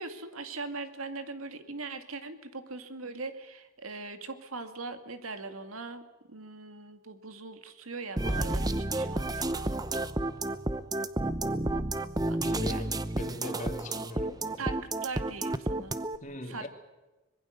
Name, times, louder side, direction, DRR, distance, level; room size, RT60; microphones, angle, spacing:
voice 1, 0.0-6.0 6.3-10.1 12.3-13.0 14.6-16.0 16.4-16.7, right 3 dB, 80° right, 8 dB, 2.2 m, -41 dB
sound 1, 8.2-16.2, right 2 dB, 20° right, 0.8 m, -31 dB
voice 2, 12.4-14.6 16.2-16.7, left 1 dB, 35° left, 5 dB, 2.7 m, -40 dB
25.0 x 21.5 x 6.6 m, 1.1 s
head